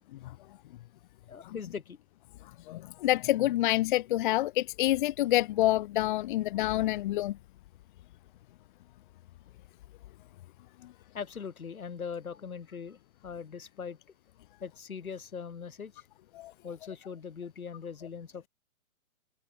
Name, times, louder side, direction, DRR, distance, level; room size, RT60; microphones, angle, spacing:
voice 1, 1.3-2.0 11.1-14.0 14.6-16.0 16.6-18.5, left 6 dB, 85° left, 3.2 m, -41 dB
voice 2, 2.7-7.4 16.3-16.5, left 15 dB, 35° left, 1.1 m, -27 dB
hypercardioid pair, 145°, 41 cm